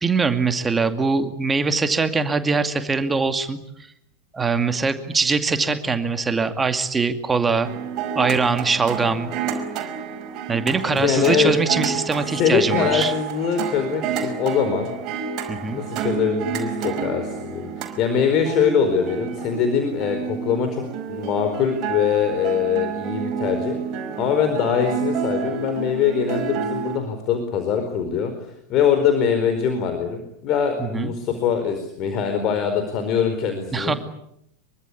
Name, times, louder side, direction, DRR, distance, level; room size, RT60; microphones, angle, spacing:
voice 1, 0.0-3.6 4.3-7.7 8.2-9.3 10.5-13.1 15.5-15.8 30.8-31.1 33.7-33.9, right 4 dB, 15° right, 8 dB, 2.3 m, -22 dB
sound 1, 7.6-27.0, right 7 dB, 35° right, 5.2 m, -29 dB
voice 2, 10.9-11.5 12.3-14.9 15.7-20.8 21.1-23.8 24.2-28.3 28.7-34.0, left 7 dB, 35° left, 7 dB, 4.6 m, -22 dB
25.5 x 24.0 x 8.6 m, 0.78 s
figure-of-eight pair, 90°, 0 cm